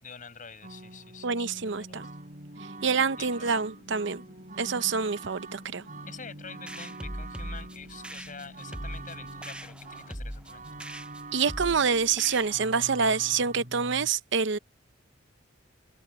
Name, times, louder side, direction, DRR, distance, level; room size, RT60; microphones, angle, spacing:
voice 1, 0.0-2.1 3.2-3.5 6.1-10.9, left 5 dB, 45° left, 5.7 m, -46 dB
sound 1, 0.6-14.1, right 2 dB, 45° right, 7.1 m, -44 dB
voice 2, 1.2-2.1 2.8-4.2 4.6-5.8 11.3-14.6, right 5 dB, 65° right, 0.7 m, -27 dB
sound 2, 3.1-10.2, left 1 dB, 70° left, 7.0 m, -59 dB
sound 3, 6.7-12.9, equal, 5° right, 0.8 m, -41 dB
head